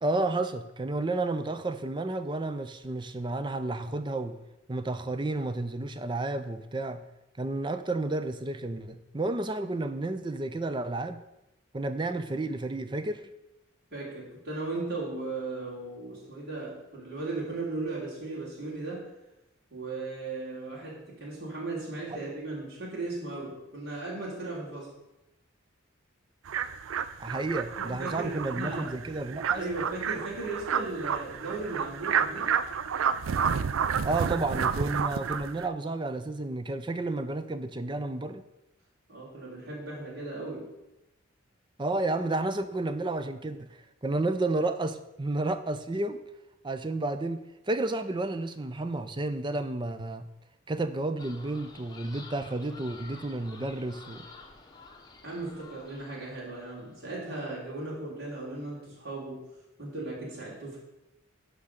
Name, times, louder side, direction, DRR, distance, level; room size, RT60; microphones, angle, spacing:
voice 1, 0.0-4.4 4.7-7.0 7.4-11.2 11.7-13.2 27.2-29.6 34.0-38.4 41.8-46.2 46.6-50.3 50.7-54.2, right 2 dB, 20° right, 10 dB, 0.5 m, -31 dB
voice 2, 13.9-19.1 19.7-24.9 27.8-28.9 29.5-32.5 39.1-40.7 55.2-59.4 59.8-60.8, right 2 dB, 50° right, -6 dB, 3.1 m, -37 dB
sound 1, 26.5-35.7, right 7 dB, 75° right, 0.4 m, -30 dB
sound 2, 51.2-57.1, left 3 dB, 20° left, 0.9 m, -50 dB
11.0 x 3.8 x 6.5 m, 0.93 s
head